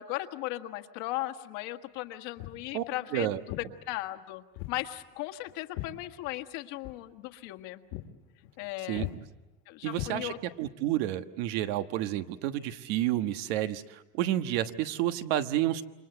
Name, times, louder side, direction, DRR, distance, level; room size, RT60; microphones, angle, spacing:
voice 1, 0.0-3.5 3.9-7.8 8.6-9.1 9.7-10.4, left 16 dB, 65° left, 7 dB, 1.6 m, -37 dB
Walk footsteps, 2.4-2.7 3.5-3.7 4.6-4.8 5.1-6.5 6.8-7.0 7.4-7.6 7.9-8.1 8.4-8.7 9.0-9.2 9.9-10.6, left 14 dB, 80° left, 2.0 m, -39 dB
voice 2, 9.8-15.8, right 13 dB, 75° right, 9 dB, 1.4 m, -30 dB
28.5 x 25.0 x 7.9 m, 1.1 s
cardioid pair, 175°, 31 cm